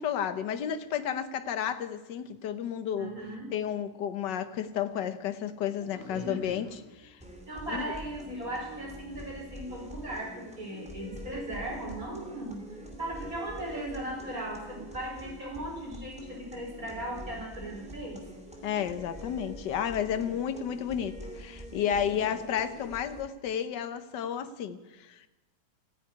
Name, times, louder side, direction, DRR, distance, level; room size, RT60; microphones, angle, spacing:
voice 1, 0.0-3.1 3.5-7.2 7.7-7.9 18.6-25.3, left 9 dB, 70° left, 10 dB, 1.6 m, -32 dB
voice 2, 3.0-3.5 5.8-6.7 7.5-12.6 13.0-18.2, right 1 dB, 45° right, -1 dB, 4.8 m, -38 dB
sound 1, 7.2-23.2, right 1 dB, 5° right, 2.9 m, -45 dB
15.5 x 9.8 x 9.4 m, 1.1 s
omnidirectional pair, 2.1 m